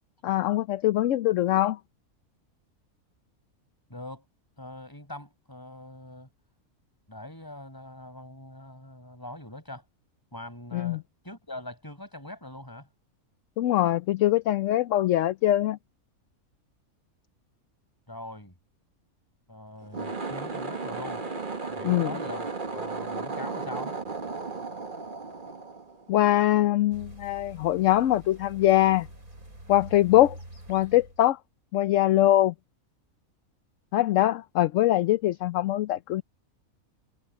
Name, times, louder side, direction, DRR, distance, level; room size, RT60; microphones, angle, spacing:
voice 1, 0.2-1.8 10.7-11.0 13.6-15.8 21.8-22.1 26.1-29.1 29.7-30.4 30.7-31.4 31.7-32.5 33.9-36.2, left 14 dB, 65° left, 0.9 m, -23 dB
voice 2, 3.9-4.2 4.6-6.3 7.1-9.8 10.3-12.9 18.1-18.5 19.5-21.2 21.7-24.0, left 1 dB, 15° left, 5.8 m, -42 dB
sound 1, 19.8-26.4, right 4 dB, 35° right, 1.7 m, -35 dB
sound 2, 26.9-31.2, right 1 dB, 75° right, 8.4 m, -46 dB
omnidirectional pair, 1.5 m